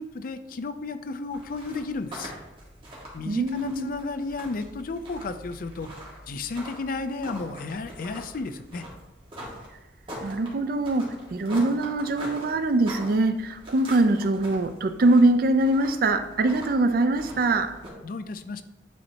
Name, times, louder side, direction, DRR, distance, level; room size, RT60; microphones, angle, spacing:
voice 1, 0.0-2.3 3.1-5.9 6.3-8.9 18.0-18.6, left 3 dB, 50° left, 10 dB, 0.4 m, -33 dB
sound 1, 1.3-17.9, equal, 30° right, 1.8 m, -43 dB
voice 2, 3.2-3.9 10.2-17.7, right 2 dB, 55° right, 10 dB, 0.4 m, -23 dB
9.3 x 4.3 x 2.8 m, 0.97 s
head